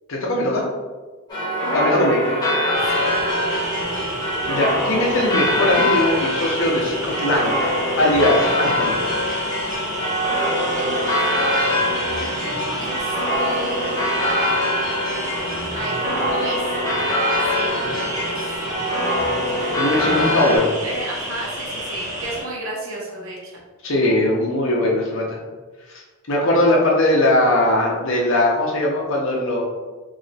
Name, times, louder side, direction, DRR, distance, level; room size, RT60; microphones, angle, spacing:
voice 1, 0.1-0.6 1.7-2.2 4.5-9.0 19.8-20.8 23.8-25.4 25.9-26.0 26.3-29.6, left 1 dB, 65° left, -2 dB, 0.8 m, -20 dB
sound 1, 1.3-20.6, equal, 20° left, 0.9 m, -23 dB
sound 2, 2.7-22.4, equal, 40° right, 1.0 m, -31 dB
voice 2, 2.9-3.5 10.7-14.2 15.7-16.7 17.5-17.8 18.0-18.5 20.8-23.6, right 2 dB, 75° right, -3 dB, 0.9 m, -33 dB
3.0 x 2.8 x 2.7 m, 1.3 s
head